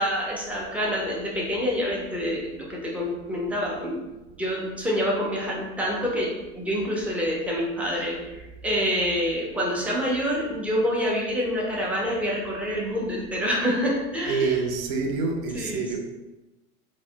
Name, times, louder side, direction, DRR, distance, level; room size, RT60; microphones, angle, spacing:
voice 1, 0.0-4.0 4.4-8.3 8.6-14.6 15.5-16.0, equal, 5° right, 0.4 m, -27 dB
voice 2, 14.3-16.0, right 4 dB, 75° right, 0.6 m, -26 dB
3.2 x 2.0 x 2.7 m
hypercardioid pair, 105°, 41 cm